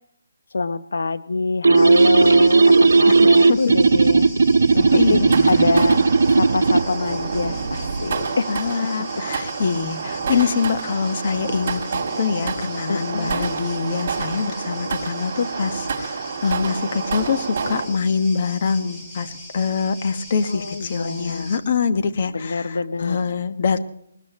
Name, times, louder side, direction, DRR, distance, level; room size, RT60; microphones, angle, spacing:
voice 1, 0.5-4.3 4.7-6.0 6.3-8.6 10.3-10.4 12.9-13.4 20.5-21.5 22.3-23.2, left 3 dB, 75° left, 12 dB, 0.9 m, -25 dB
sound 1, 1.6-6.9, right 4 dB, 75° right, 1.1 m, -15 dB
sound 2, 1.7-21.6, left 1 dB, 10° left, 3.0 m, -41 dB
sound 3, 4.7-17.9, right 5 dB, 45° right, 6.3 m, -28 dB
voice 2, 4.9-5.7 8.5-23.8, left 5 dB, 45° left, 8 dB, 1.5 m, -24 dB
21.0 x 20.5 x 3.1 m, 0.72 s
hypercardioid pair, 160°, 0 cm